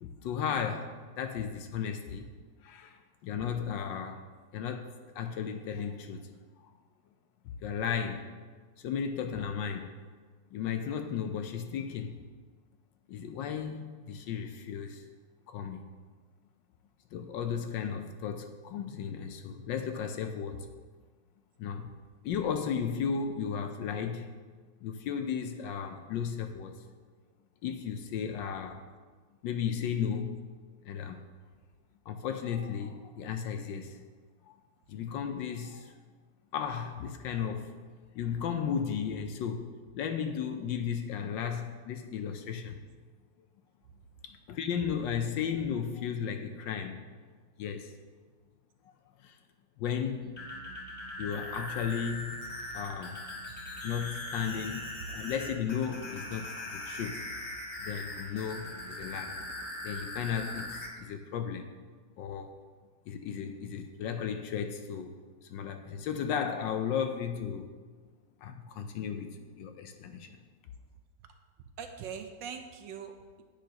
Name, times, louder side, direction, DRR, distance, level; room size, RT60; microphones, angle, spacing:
voice 1, 0.0-2.3 2.6-4.2 4.5-6.3 7.6-8.3 8.8-9.9 10.5-12.2 13.1-15.0 15.5-15.9 17.1-20.7 21.6-21.9 22.2-24.3 24.8-26.8 27.6-28.8 29.4-30.4 30.8-31.2 32.1-34.0 34.5-34.6 34.9-35.9 36.5-37.7 38.1-42.8 44.2-47.1 47.6-47.9 49.2-49.4 49.8-50.4 51.2-52.4 52.7-53.2 53.8-57.3 57.8-59.4 59.8-61.7 62.2-62.5 63.1-65.1 65.5-67.7 68.4-70.4, left 7 dB, 75° left, 1.2 m, -35 dB
sound 1, 50.2-60.9, left 1 dB, 35° left, 2.0 m, -40 dB
voice 2, 71.8-73.4, right 7 dB, 70° right, 1.3 m, -42 dB
10.5 x 9.0 x 2.9 m
omnidirectional pair, 2.2 m